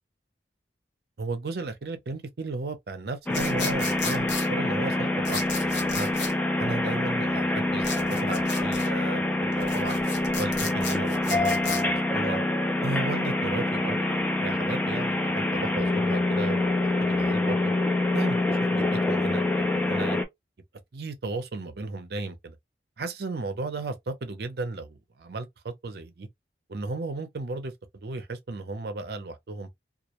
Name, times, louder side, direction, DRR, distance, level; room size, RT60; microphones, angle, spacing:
voice 1, 1.2-6.1 6.6-10.0 10.4-12.4 12.8-17.7 18.1-19.5 19.7-20.2 20.9-22.6 23.0-26.3 26.7-29.7, right 3 dB, 55° right, 0.5 m, -35 dB
sound 1, 3.3-4.5 5.2-6.3 7.8-8.9 9.5-11.8, left 5 dB, 75° left, 0.7 m, -35 dB
sound 2, 3.3-20.2, left 2 dB, 10° left, 0.3 m, -26 dB
2.3 x 2.1 x 2.9 m
head